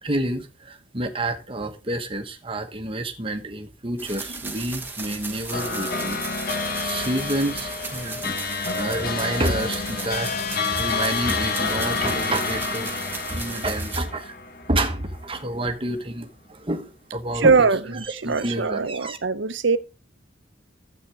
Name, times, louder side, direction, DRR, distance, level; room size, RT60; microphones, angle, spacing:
voice 1, 0.0-8.4 8.8-13.0 13.3-14.3 14.7-19.2, right 1 dB, 30° right, 1.2 m, -29 dB
sound 1, 4.0-14.0, right 4 dB, 10° right, 1.4 m, -36 dB
sound 2, 4.7-10.6, left 3 dB, 30° left, 1.6 m, -48 dB
sound 3, 5.5-15.2, left 4 dB, 50° left, 1.2 m, -29 dB
voice 2, 17.4-19.8, right 4 dB, 70° right, 0.8 m, -21 dB
12.0 x 8.2 x 3.4 m
head